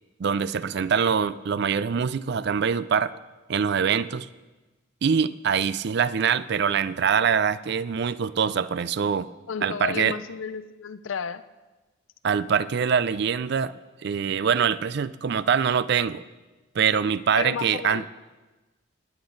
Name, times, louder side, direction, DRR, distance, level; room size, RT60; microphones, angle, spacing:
voice 1, 0.2-3.1 3.5-4.3 5.0-9.3 9.6-10.2 12.2-13.7 14.0-16.2 16.8-18.0, right 7 dB, 55° right, 17 dB, 0.4 m, -24 dB
voice 2, 9.5-11.4 17.4-18.1, left 6 dB, 75° left, 14 dB, 0.5 m, -32 dB
19.0 x 9.8 x 3.9 m, 1.2 s
head